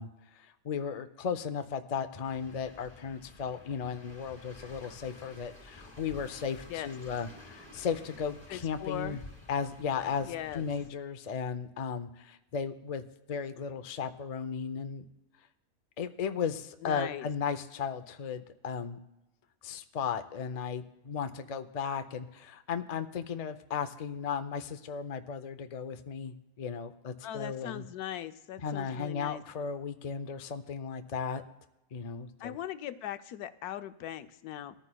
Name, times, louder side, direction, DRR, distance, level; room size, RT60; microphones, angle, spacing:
voice 1, 0.0-9.2 9.5-15.0 16.0-19.0 19.6-27.8 28.6-31.4 31.9-32.6, left 6 dB, 65° left, 8 dB, 0.3 m, -35 dB
sound 1, 2.2-10.9, left 2 dB, 15° left, 1.8 m, -52 dB
voice 2, 8.5-9.2 10.2-10.6 16.8-17.3 27.2-29.4 32.4-34.7, left 12 dB, 90° left, 10 dB, 1.1 m, -39 dB
21.5 x 14.0 x 2.3 m, 0.99 s
omnidirectional pair, 1.6 m